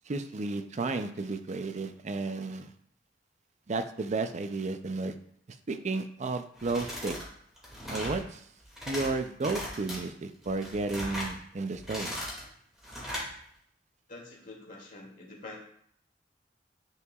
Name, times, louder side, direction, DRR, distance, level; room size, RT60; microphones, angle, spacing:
voice 1, 0.1-2.7 3.7-5.1 5.7-7.2 7.9-8.4 8.9-12.2, right 3 dB, 40° right, 9 dB, 0.5 m, -33 dB
sound 1, 6.6-7.3 7.6-8.2 8.6-9.1 9.4-10.0 10.4-11.3 11.7-12.4 12.8-13.3, equal, 5° right, 2.2 m, -37 dB
voice 2, 14.1-15.6, left 2 dB, 50° left, -2 dB, 1.9 m, -46 dB
9.6 x 4.7 x 2.4 m, 0.65 s
head